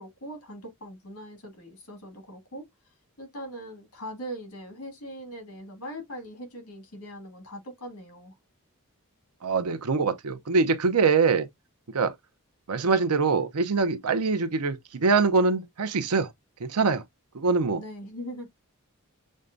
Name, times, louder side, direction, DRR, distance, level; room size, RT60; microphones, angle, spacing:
voice 1, 0.0-2.7 3.2-8.4 17.7-18.5, equal, 75° left, 2.2 m, -41 dB
voice 2, 9.4-11.5 11.9-12.1 12.7-16.3 16.6-17.0 17.3-17.8, right 4 dB, 85° right, 0.7 m, -24 dB
6.3 x 2.2 x 2.5 m
head